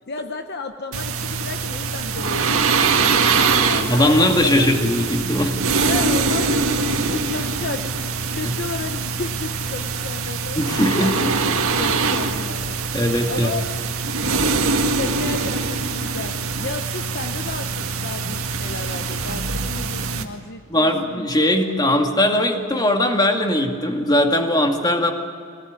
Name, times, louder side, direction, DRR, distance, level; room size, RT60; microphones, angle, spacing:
voice 1, 0.1-4.7 5.8-10.6 11.0-11.2 11.5-12.8 13.3-13.6 14.8-21.3, left 3 dB, 50° left, 7 dB, 0.9 m, -33 dB
sound 1, 0.9-20.2, right 4 dB, 85° right, 1.9 m, -23 dB
voice 2, 3.9-5.6 8.4-8.5 10.6-11.3 12.9-13.5 20.7-25.1, left 1 dB, 20° left, 3 dB, 2.2 m, -19 dB
24.5 x 18.5 x 9.5 m, 2.2 s
head